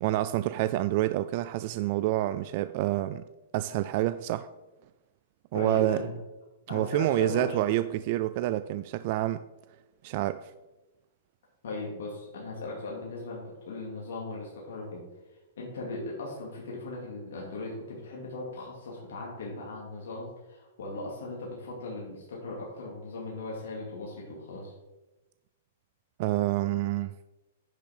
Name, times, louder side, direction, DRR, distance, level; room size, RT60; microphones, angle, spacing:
voice 1, 0.0-3.2 3.5-4.5 5.5-6.0 6.7-9.4 10.0-10.5 26.2-27.1, right 15 dB, 45° right, 12 dB, 0.3 m, -28 dB
voice 2, 5.5-6.1 6.7-7.6 11.6-15.0 15.6-24.7, left 2 dB, 75° left, -3 dB, 2.5 m, -38 dB
10.0 x 6.0 x 4.4 m, 1.1 s
hypercardioid pair, 145°, 0 cm